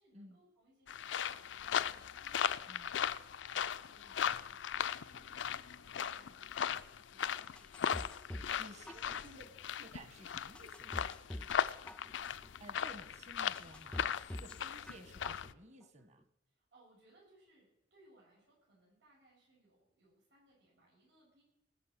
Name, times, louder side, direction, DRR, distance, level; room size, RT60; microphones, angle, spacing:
voice 1, 0.0-3.2 3.5-8.4 8.8-9.5 11.4-11.6 16.5-21.4, right 1 dB, 90° right, -4 dB, 6.8 m, -68 dB
sound 1, 0.9-15.5, left 8 dB, 90° left, 0.5 m, -38 dB
sound 2, 7.6-8.6 8.9-9.5 10.0-10.1 10.6-11.6 11.9-12.5 13.0-13.1 13.6-14.6 14.9-15.5 15.8-15.9, left 1 dB, 5° left, 0.4 m, -46 dB
voice 2, 8.6-9.4 9.8-11.1 12.6-16.3, right 1 dB, 40° right, 9 dB, 1.3 m, -55 dB
19.5 x 6.7 x 7.4 m, 0.93 s
head